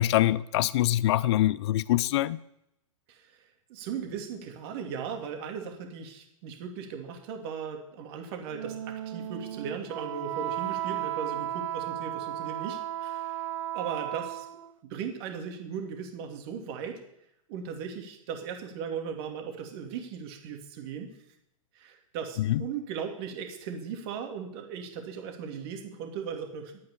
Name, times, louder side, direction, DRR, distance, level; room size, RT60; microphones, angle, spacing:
voice 1, 0.0-2.4 22.5-22.6, left 14 dB, 50° left, 0.5 m, -24 dB
voice 2, 3.1-3.4 3.7-13.5 13.7-14.5 14.9-17.0 17.5-21.1 21.7-26.9, right 7 dB, 45° right, 2.6 m, -37 dB
Wind instrument woodwind instrument, 8.5-14.7, right 13 dB, 65° right, 0.7 m, -34 dB
11.5 x 8.8 x 6.9 m
hypercardioid pair, 110°, 18 cm